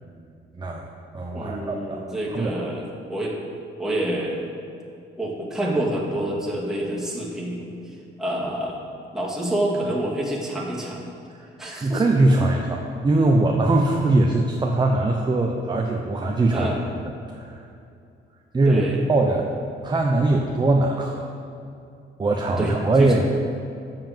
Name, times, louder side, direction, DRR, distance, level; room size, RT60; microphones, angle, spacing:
voice 1, 0.5-0.9 1.1-2.0 2.3-2.5 11.3-11.5 11.8-16.7 17.2-17.6 18.5-18.8 19.1-19.5 19.8-21.3 22.2-23.3, right 2 dB, 20° right, 1 dB, 0.7 m, -21 dB
voice 2, 1.3-3.4 3.8-4.4 5.2-8.8 9.1-11.1 11.6-12.0 16.5-16.8 18.6-19.0 22.6-23.2, right 1 dB, ahead, -5 dB, 2.2 m, -28 dB
6.9 x 5.7 x 7.4 m, 2.5 s
cardioid pair, 90°, 20 cm